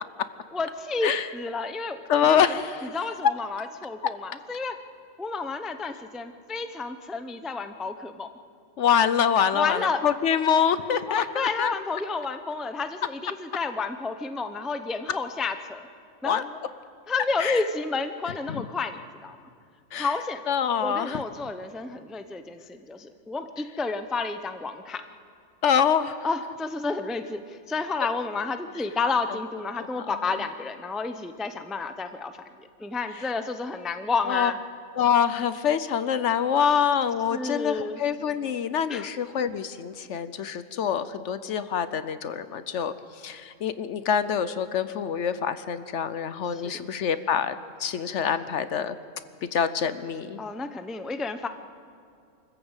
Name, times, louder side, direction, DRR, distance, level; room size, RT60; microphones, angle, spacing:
voice 1, 0.5-2.0 2.3-2.5 2.8-4.8 5.2-8.3 9.5-10.0 11.1-15.9 16.2-16.4 17.1-19.4 19.9-20.4 20.8-25.0 26.2-32.3 32.8-34.6 37.3-38.0 38.9-39.1 46.5-46.8 50.4-51.5, left 4 dB, ahead, 8 dB, 0.5 m, -30 dB
voice 2, 2.1-3.0 3.2-3.3 8.8-11.7 16.2-16.6 17.4-17.6 18.5-18.7 19.9-20.1 20.5-21.2 25.6-26.2 29.8-30.2 34.3-34.5 35.0-42.9 43.2-47.5 47.8-49.0 49.4-50.4, left 8 dB, 65° left, 13 dB, 1.0 m, -25 dB
25.0 x 14.0 x 8.1 m, 2.4 s
omnidirectional pair, 1.4 m